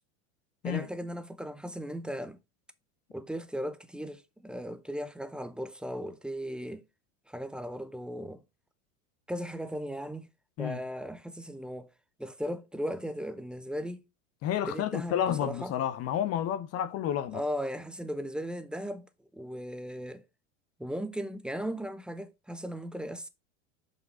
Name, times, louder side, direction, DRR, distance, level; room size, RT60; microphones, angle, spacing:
voice 1, 0.6-2.4 3.1-6.8 7.3-8.4 9.3-10.3 10.6-11.9 12.2-14.0 14.7-15.7 17.3-19.1 19.3-20.2 20.8-23.3, equal, ahead, 0.4 m, -37 dB
voice 2, 14.4-17.4, left 10 dB, 35° left, 0.8 m, -30 dB
6.2 x 5.3 x 4.2 m
hypercardioid pair, 95°, 40 cm